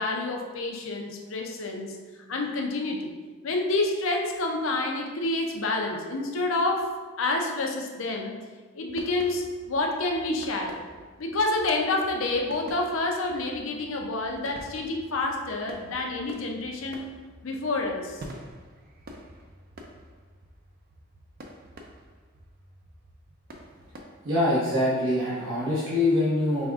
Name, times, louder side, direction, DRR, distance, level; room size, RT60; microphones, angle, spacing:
voice 1, 0.0-2.0 2.3-3.1 3.4-6.9 7.2-8.5 8.7-10.8 11.2-17.1 17.4-18.2, left 2 dB, 75° left, 2 dB, 0.6 m, -28 dB
sound 1, 8.9-24.0, right 1 dB, 50° right, 0.5 m, -48 dB
voice 2, 24.2-26.7, left 1 dB, 75° right, -9 dB, 1.0 m, -24 dB
5.2 x 3.4 x 2.4 m, 1.4 s
head